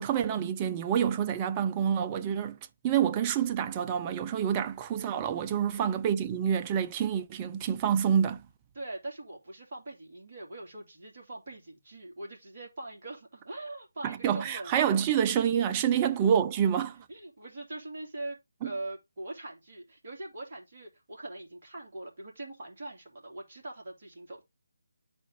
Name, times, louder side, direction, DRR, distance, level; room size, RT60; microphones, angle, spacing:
voice 1, 0.0-2.6 2.8-8.4 14.0-17.0 18.6-18.7, right 8 dB, 20° right, 0.6 m, -27 dB
voice 2, 8.7-15.1 16.0-24.4, right 2 dB, 40° right, 2.9 m, -43 dB
10.0 x 4.4 x 3.6 m
figure-of-eight pair, 150°, 0 cm